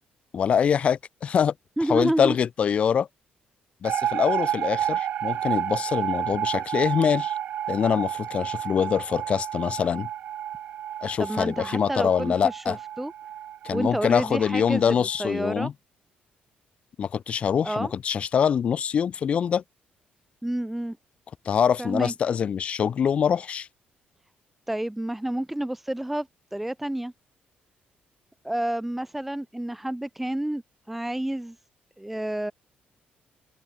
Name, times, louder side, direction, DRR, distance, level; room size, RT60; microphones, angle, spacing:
voice 1, 0.3-1.5 1.9-3.1 3.8-7.3 7.7-10.1 11.0-12.8 13.6-15.7 17.0-19.6 21.4-23.7, left 7 dB, 35° left, 0.7 m, -24 dB
voice 2, 1.8-2.4 11.2-13.1 13.7-15.7 17.6-17.9 20.4-21.0 21.8-22.1 24.7-27.1 28.4-30.6 30.9-31.6 32.0-32.5, right 1 dB, 5° right, 1.3 m, -29 dB
sound 1, 3.8-15.0, right 11 dB, 50° right, 1.6 m, -31 dB
open air
cardioid pair, 180°, 4 cm